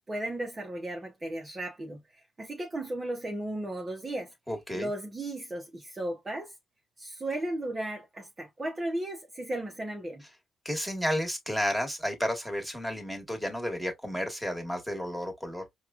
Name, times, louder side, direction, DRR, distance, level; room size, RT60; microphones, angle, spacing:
voice 1, 0.1-4.3 4.7-6.5 7.0-10.2, right 1 dB, 25° right, 0.8 m, -35 dB
voice 2, 4.5-4.9 10.6-15.6, equal, ahead, 1.5 m, -32 dB
4.6 x 2.3 x 2.4 m
cardioid pair, 90°, 0 cm